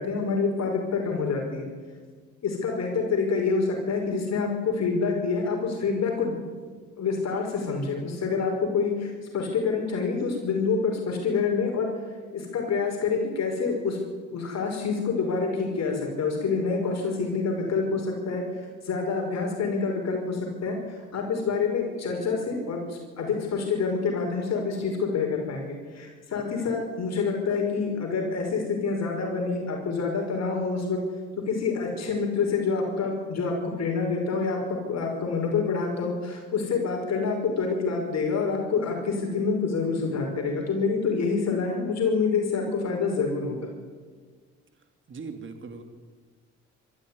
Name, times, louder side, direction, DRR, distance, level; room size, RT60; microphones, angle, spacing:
voice 1, 0.0-1.7 2.4-6.4 7.0-11.9 12.3-31.0 31.5-43.7, left 4 dB, 60° left, 2 dB, 5.3 m, -27 dB
voice 2, 45.1-45.8, right 4 dB, 40° right, 6 dB, 2.6 m, -39 dB
23.5 x 13.5 x 9.8 m, 1.5 s
cardioid pair, 90°, 30 cm